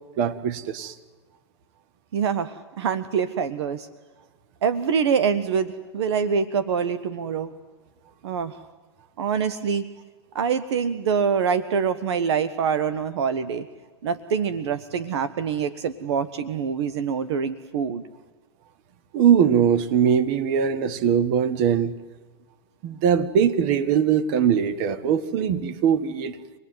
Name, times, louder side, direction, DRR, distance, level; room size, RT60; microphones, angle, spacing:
voice 1, 0.2-0.9 19.1-21.9 22.8-26.4, right 8 dB, 45° right, 12 dB, 1.7 m, -21 dB
voice 2, 2.1-3.9 4.6-7.5 8.2-8.6 9.2-9.9 10.3-13.7 14.0-18.0, right 6 dB, 70° right, 14 dB, 1.2 m, -25 dB
26.0 x 19.0 x 9.6 m, 1.3 s
hypercardioid pair, 130°, 14 cm